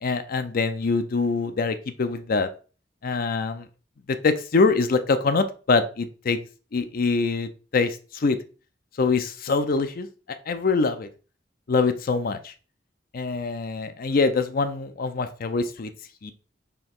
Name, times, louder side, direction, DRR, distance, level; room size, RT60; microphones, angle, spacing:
voice 1, 0.0-2.5 3.0-3.6 4.1-6.4 6.7-8.4 9.0-10.1 10.5-11.1 11.7-12.5 13.1-15.9 16.2-16.3, left 4 dB, 50° left, 10 dB, 0.5 m, -24 dB
4.4 x 2.8 x 3.7 m, 0.36 s
head